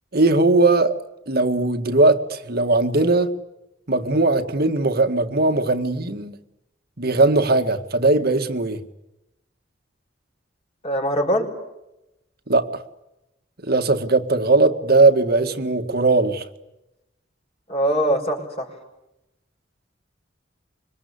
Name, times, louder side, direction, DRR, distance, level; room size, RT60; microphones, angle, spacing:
voice 1, 0.1-0.9 1.3-3.3 3.9-6.4 7.0-8.8 12.5-12.8 13.6-16.5, right 2 dB, 55° right, 2.0 m, -19 dB
voice 2, 10.8-11.5 17.7-18.7, equal, 35° left, 5.8 m, -22 dB
26.5 x 24.5 x 8.5 m
head